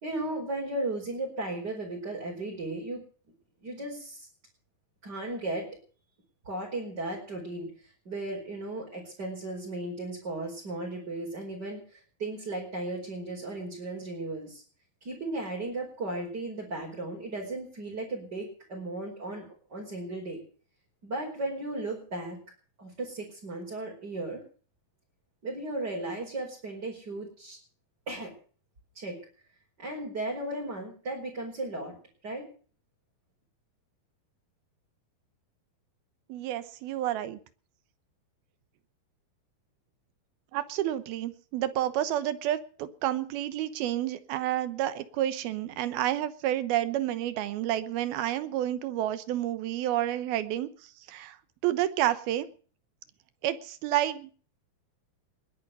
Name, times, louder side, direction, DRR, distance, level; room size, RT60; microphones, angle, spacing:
voice 1, 0.0-3.0 3.6-4.3 5.0-5.7 6.4-14.6 15.0-20.4 21.0-22.4 22.8-24.4 25.4-27.6 28.1-28.3 29.0-29.2 29.8-32.0 32.2-32.5, right 2 dB, 25° right, -2 dB, 5.2 m, -35 dB
voice 2, 36.3-37.4 40.5-50.7 51.1-51.4 51.6-52.5 53.4-54.3, right 12 dB, 85° right, 13 dB, 3.0 m, -30 dB
21.0 x 9.7 x 6.7 m, 0.42 s
omnidirectional pair, 4.2 m